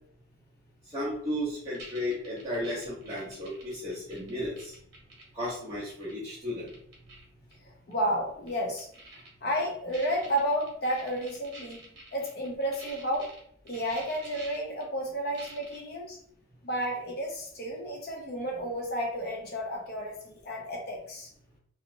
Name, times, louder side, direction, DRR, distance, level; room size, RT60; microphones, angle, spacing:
voice 1, 0.9-4.8 5.3-6.7, left 1 dB, 15° right, -10 dB, 0.6 m, -34 dB
sound 1, 1.7-5.5 5.9-6.1 6.5-7.2 7.5-7.6 7.9-8.0 8.5-9.3 9.6-9.7 9.9-13.4 13.7-14.8 15.3-15.8, right 2 dB, 55° right, 0.9 m, -47 dB
voice 2, 7.6-8.9 9.4-11.8 12.1-13.3 13.6-16.2 16.6-21.3, equal, 50° left, 0 dB, 0.6 m, -32 dB
2.8 x 2.0 x 2.6 m, 0.65 s
head